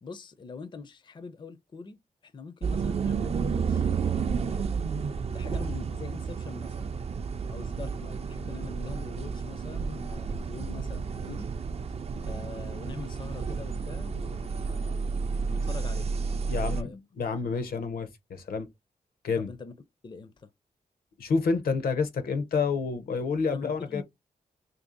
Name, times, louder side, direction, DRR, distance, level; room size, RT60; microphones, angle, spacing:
voice 1, 0.0-4.7 5.3-6.9 7.5-11.5 12.2-15.0 15.5-16.2 16.6-17.0 19.4-19.8 20.0-20.5 23.5-24.0, left 4 dB, 30° left, 0.4 m, -43 dB
sound 1, 2.6-16.8, right 5 dB, 45° right, 0.4 m, -31 dB
voice 2, 16.5-16.9 17.2-18.7 19.2-19.5 21.2-24.0, left 5 dB, 75° left, 0.6 m, -28 dB
2.7 x 2.6 x 3.8 m
cardioid pair, 85°, 15 cm